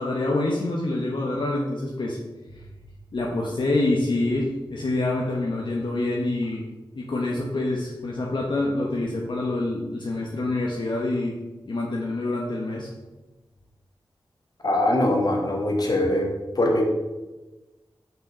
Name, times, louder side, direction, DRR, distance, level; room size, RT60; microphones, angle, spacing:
voice 1, 0.0-2.2 2.5-2.6 3.1-6.6 6.9-11.4 11.7-12.9, left 2 dB, 65° left, -2 dB, 1.0 m, -26 dB
voice 2, 14.6-16.3 16.6-16.8, left 1 dB, 50° left, 1 dB, 1.7 m, -22 dB
6.2 x 5.8 x 5.0 m, 1.1 s
wide cardioid pair, 90°, 9 cm